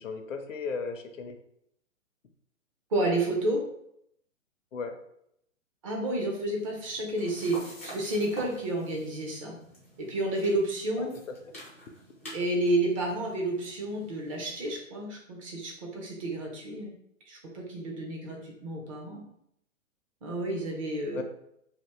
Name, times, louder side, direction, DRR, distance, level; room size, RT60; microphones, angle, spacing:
voice 1, 0.0-1.4 4.7-5.0 11.0-11.1 21.1-21.2, left 5 dB, 70° left, 6 dB, 0.6 m, -35 dB
voice 2, 2.9-3.6 5.8-9.5 10.0-11.1 12.3-16.9 17.3-19.2 20.2-21.2, right 1 dB, 25° right, -1 dB, 0.6 m, -30 dB
sound 1, 6.5-14.7, left 1 dB, 10° left, 0.3 m, -48 dB
2.8 x 2.6 x 3.4 m, 0.75 s
figure-of-eight pair, 120°, 40 cm